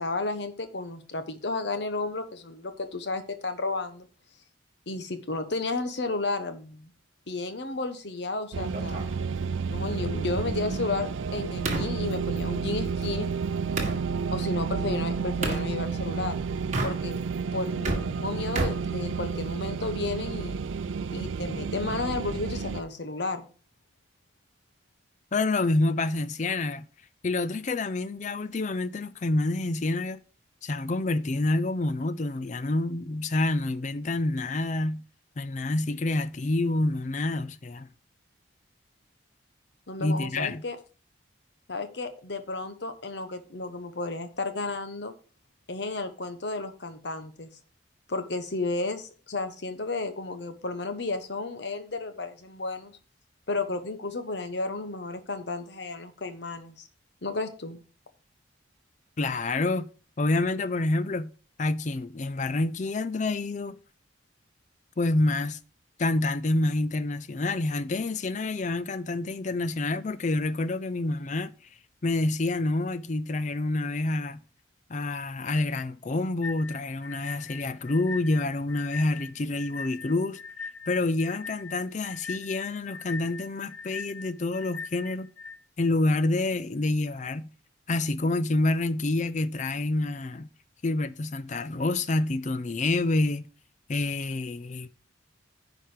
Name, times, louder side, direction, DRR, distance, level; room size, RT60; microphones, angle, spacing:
voice 1, 0.0-4.1 4.9-6.9 7.3-9.0 9.7-13.3 14.3-16.4 16.8-17.2 17.5-20.6 21.1-23.4 39.9-40.8 41.7-45.1 45.7-47.5 48.1-52.9 53.5-56.9 57.2-57.8, left 3 dB, 60° left, 1.1 m, -32 dB
sound 1, 8.5-22.8, right 5 dB, 75° right, 0.4 m, -31 dB
sound 2, 8.7-14.0 15.4-15.7 16.6-17.4 17.7-19.6, right 2 dB, 35° right, 1.8 m, -34 dB
voice 2, 25.3-26.8 27.2-30.2 30.6-35.0 35.4-37.9 40.0-40.6 59.2-59.9 60.2-61.3 61.6-63.8 65.0-65.6 66.0-71.5 72.0-74.4 74.9-80.4 80.9-85.3 85.8-87.5 87.9-90.5 90.8-93.5 93.9-94.9, left 2 dB, 40° left, 0.5 m, -27 dB
sound 3, 76.4-85.6, left 5 dB, 90° left, 0.9 m, -41 dB
10.5 x 4.9 x 4.9 m
head